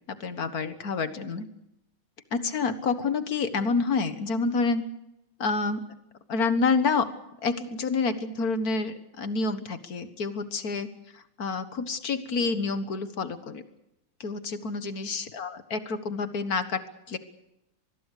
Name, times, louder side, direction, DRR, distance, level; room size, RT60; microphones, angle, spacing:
voice 1, 0.1-1.5 2.3-4.8 5.4-5.8 6.3-7.1 7.4-10.9 11.1-13.6 14.2-17.2, left 4 dB, 50° left, 11 dB, 1.8 m, -28 dB
25.0 x 20.5 x 6.6 m, 0.85 s
omnidirectional pair, 2.3 m